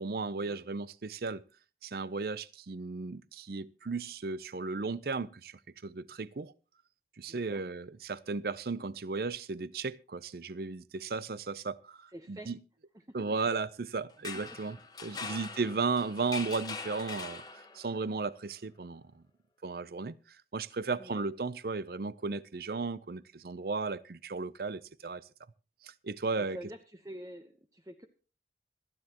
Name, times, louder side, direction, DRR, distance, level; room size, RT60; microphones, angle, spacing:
voice 1, 0.0-1.4 1.8-6.5 7.2-12.6 13.1-19.2 19.6-20.1 20.5-25.2 25.8-26.6, right 4 dB, 55° right, 0.6 m, -35 dB
voice 2, 7.3-7.6 12.1-12.5 12.9-13.1 14.5-14.6 21.0-21.3 26.4-28.1, right 1 dB, 20° right, 0.8 m, -47 dB
sound 1, 14.1-18.0, left 4 dB, 20° left, 1.2 m, -42 dB
26.5 x 9.8 x 2.9 m
head